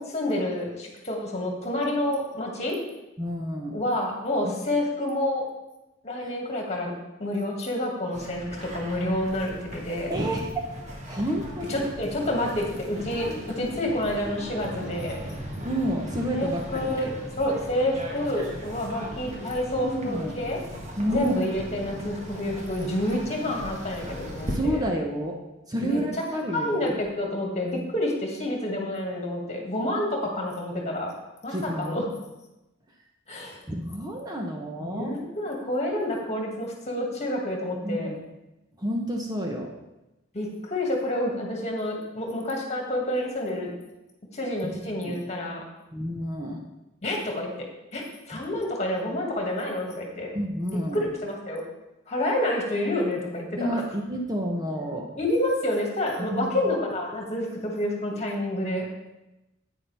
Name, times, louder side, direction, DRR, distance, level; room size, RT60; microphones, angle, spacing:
voice 1, 0.0-2.8 3.7-5.5 6.0-6.9 7.2-10.1 11.7-15.2 16.3-17.1 17.4-20.6 21.1-24.8 25.8-26.0 26.5-31.1 31.4-32.0 33.3-33.6 34.9-38.1 40.3-43.7 44.3-45.6 47.0-47.5 47.9-50.3 50.7-51.6 52.1-53.8 55.2-58.9, left 1 dB, 35° left, 0 dB, 2.1 m, -28 dB
voice 2, 3.2-3.8 4.4-4.5 6.2-6.3 10.1-10.7 11.0-11.9 15.6-17.1 18.4-18.5 19.8-20.4 21.0-21.4 24.5-25.4 25.7-27.0 31.5-32.0 33.7-35.1 37.8-38.2 38.8-39.7 44.6-44.8 45.0-45.1 45.9-46.6 48.3-48.4 50.3-51.0 53.6-55.1 56.2-56.6, equal, 20° right, 1 dB, 0.9 m, -30 dB
sound 1, 8.1-24.6, equal, 35° right, 1.6 m, -38 dB
10.0 x 8.9 x 3.5 m, 0.96 s
head